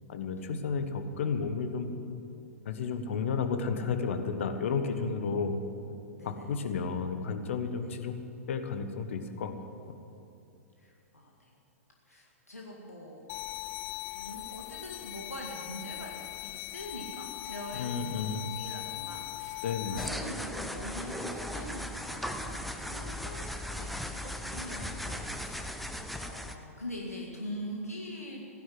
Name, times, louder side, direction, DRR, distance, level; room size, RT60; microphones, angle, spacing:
voice 1, 0.1-1.9 2.6-5.6 6.2-8.2 8.5-9.5 17.7-18.5 19.6-20.0, left 5 dB, 55° left, 8 dB, 1.3 m, -32 dB
voice 2, 10.8-11.5 12.1-13.3 14.1-19.6 19.9-25.6 25.9-28.4, equal, 85° left, -2 dB, 2.0 m, -43 dB
sound 1, 13.3-20.1, left 22 dB, 35° left, 0.3 m, -40 dB
sound 2, 20.0-26.5, left 1 dB, ahead, 0.8 m, -37 dB
15.5 x 10.5 x 7.7 m, 2.8 s
figure-of-eight pair, 105°, 8 cm